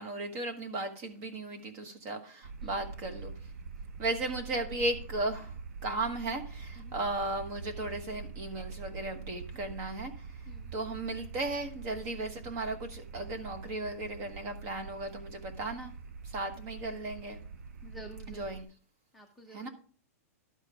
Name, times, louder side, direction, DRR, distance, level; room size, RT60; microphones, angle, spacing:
voice 1, 0.0-3.3 4.0-5.6 5.8-10.4 10.7-15.9 16.2-17.4 18.3-18.7 19.5-19.7, right 2 dB, 30° right, 6 dB, 1.3 m, -36 dB
sound 1, 2.4-18.6, right 5 dB, 85° right, 0.8 m, -45 dB
voice 2, 17.8-18.6 19.1-19.7, right 1 dB, ahead, 3 dB, 0.7 m, -50 dB
11.5 x 5.3 x 4.9 m, 0.43 s
hypercardioid pair, 160°, 8 cm